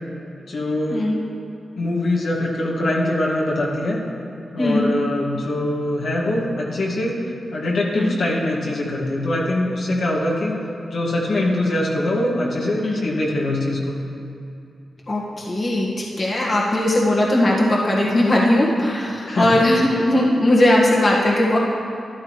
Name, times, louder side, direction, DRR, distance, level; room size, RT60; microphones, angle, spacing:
voice 1, 0.5-1.0 1.8-4.0 4.5-7.2 7.5-10.6 10.9-14.0 19.2-19.5, left 1 dB, 70° left, -4 dB, 1.9 m, -23 dB
voice 2, 4.6-4.9 7.9-8.2 12.8-13.1 15.1-21.6, left 1 dB, 50° left, -4 dB, 1.7 m, -19 dB
13.5 x 11.0 x 3.2 m, 2.6 s
cardioid pair, 55°, 0 cm